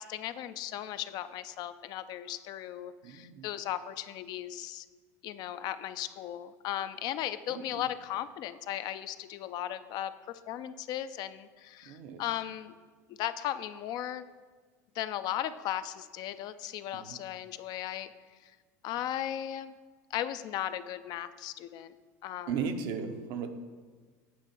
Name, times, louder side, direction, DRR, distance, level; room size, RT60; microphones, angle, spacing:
voice 1, 0.0-4.9 5.2-12.7 13.1-14.3 14.9-18.1 18.4-18.5 18.8-19.7 20.1-21.9 22.2-22.7, left 12 dB, 50° left, 12 dB, 0.3 m, -37 dB
voice 2, 3.0-3.5 7.5-7.8 11.8-12.2 16.9-17.2 22.5-23.5, right 6 dB, 60° right, 7 dB, 0.7 m, -36 dB
8.4 x 2.9 x 5.7 m, 1.5 s
hypercardioid pair, 90°, 9 cm